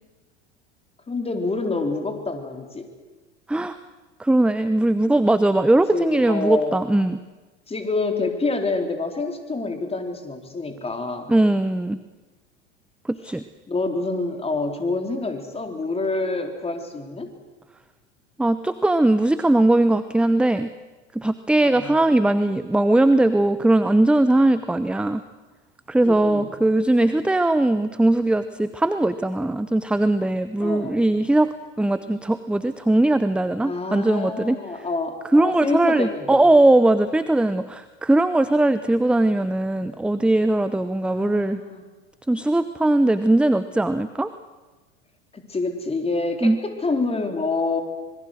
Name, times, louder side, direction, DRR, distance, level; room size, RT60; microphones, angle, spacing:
voice 1, 1.1-2.9 5.9-6.8 7.7-11.3 13.7-17.3 21.6-22.0 26.0-26.5 30.6-31.0 33.6-36.5 41.0-41.8 45.3-47.8, left 3 dB, 15° left, 5 dB, 3.7 m, -27 dB
voice 2, 4.2-7.2 11.3-12.0 13.1-13.4 18.4-20.7 21.1-25.2 25.9-34.6 35.3-41.6 42.3-44.3 46.4-46.6, right 1 dB, 5° right, 12 dB, 0.7 m, -20 dB
26.0 x 21.5 x 6.4 m, 1.2 s
hypercardioid pair, 85°, 35 cm